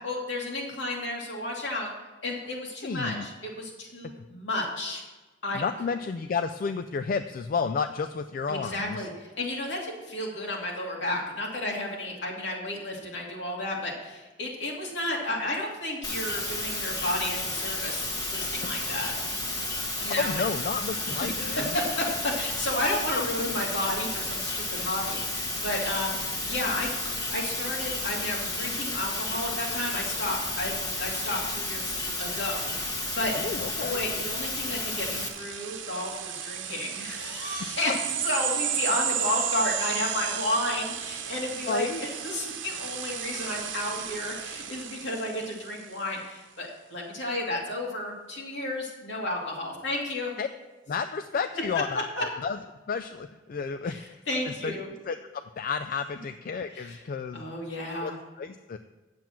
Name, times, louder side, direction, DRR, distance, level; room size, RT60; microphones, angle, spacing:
voice 1, 0.0-1.9 2.2-5.0 5.4-5.6 8.5-19.1 20.0-20.4 21.2-26.2 26.4-33.5 33.8-50.3 52.2-52.3 53.9-54.9 56.8-57.0 57.3-58.2, left 1 dB, 70° left, -2 dB, 2.4 m, -32 dB
voice 2, 2.8-3.3 5.5-9.1 20.2-21.8 33.3-34.0 41.7-42.0 50.4-50.5 50.9-52.6 52.9-54.2 54.6-54.8 55.1-57.4 58.0-58.1 58.4-58.8, left 5 dB, 50° left, 9 dB, 0.3 m, -31 dB
sound 1, 16.0-35.3, left 2 dB, 20° left, 1.3 m, -32 dB
sound 2, 34.8-45.9, right 9 dB, 85° right, 0.9 m, -33 dB
9.3 x 7.6 x 5.8 m, 1.2 s
head